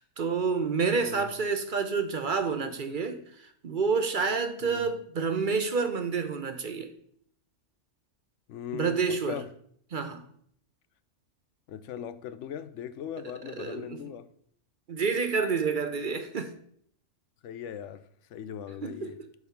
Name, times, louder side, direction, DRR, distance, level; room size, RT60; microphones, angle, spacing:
voice 1, 0.0-6.9 8.7-9.4 9.9-10.2 13.6-14.0 14.9-16.6 18.8-19.1, right 5 dB, 50° right, 0.8 m, -29 dB
voice 2, 1.0-1.3 4.6-4.9 8.5-9.5 11.7-14.3 17.4-19.2, left 9 dB, 75° left, 0.9 m, -39 dB
10.5 x 3.7 x 5.7 m
omnidirectional pair, 1.2 m